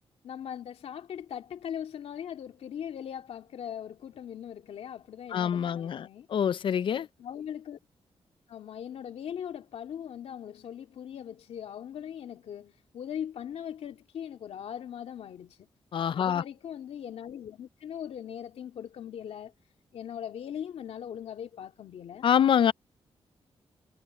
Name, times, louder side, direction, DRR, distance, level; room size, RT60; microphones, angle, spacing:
voice 1, 0.2-6.3 7.2-7.8 8.5-15.7 16.1-19.5 19.9-22.3, left 9 dB, 80° left, 2.5 m, -40 dB
voice 2, 5.3-7.1 15.9-16.4 22.2-22.7, left 8 dB, 55° left, 0.5 m, -25 dB
wide cardioid pair, 140°, 10 cm